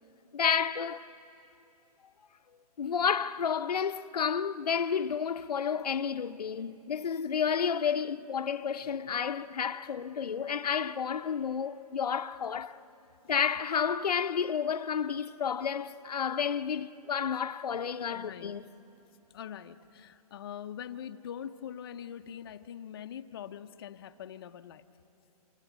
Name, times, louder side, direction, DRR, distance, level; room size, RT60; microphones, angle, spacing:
voice 1, 0.3-1.0 2.8-12.8 13.3-18.6, left 7 dB, 90° left, 0.8 m, -31 dB
voice 2, 18.0-18.5 19.3-24.8, left 9 dB, 35° left, 0.6 m, -43 dB
27.0 x 23.5 x 8.1 m
hypercardioid pair, 165°, 20 cm